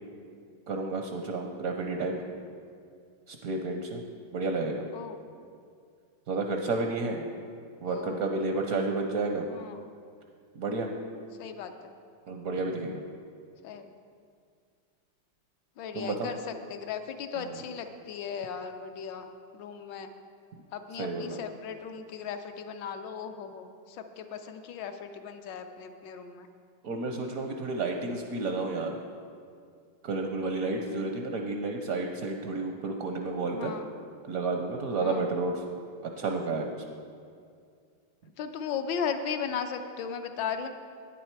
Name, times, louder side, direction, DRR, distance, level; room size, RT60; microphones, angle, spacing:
voice 1, 0.7-2.1 3.3-4.0 4.3-4.8 6.3-7.2 7.8-9.5 10.5-10.9 12.3-13.0 15.9-16.3 17.4-17.6 21.0-21.4 26.8-29.0 30.0-33.7 34.2-35.6 36.2-36.8, right 3 dB, 70° right, 3 dB, 0.8 m, -31 dB
voice 2, 7.8-8.4 9.5-9.9 11.4-11.9 13.6-13.9 15.8-20.1 20.7-26.5 33.5-33.9 35.0-35.3 38.4-40.7, left 7 dB, 75° left, 7 dB, 1.2 m, -37 dB
9.9 x 9.3 x 4.5 m, 2.2 s
omnidirectional pair, 2.2 m